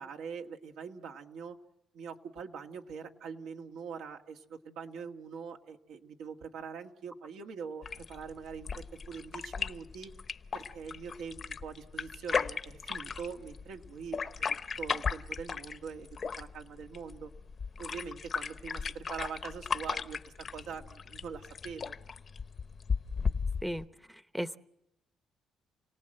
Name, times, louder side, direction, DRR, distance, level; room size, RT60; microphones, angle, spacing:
voice 1, 0.0-1.6 1.9-10.1 10.5-16.1 16.4-17.3 17.8-20.2 20.5-22.0, right 6 dB, 85° right, 3 dB, 2.0 m, -43 dB
sound 1, 7.8-23.8, left 5 dB, 45° left, 0.9 m, -36 dB
voice 2, 23.6-24.6, equal, ahead, 12 dB, 0.8 m, -37 dB
29.0 x 18.5 x 7.8 m, 0.88 s
cardioid pair, 90°, 0 cm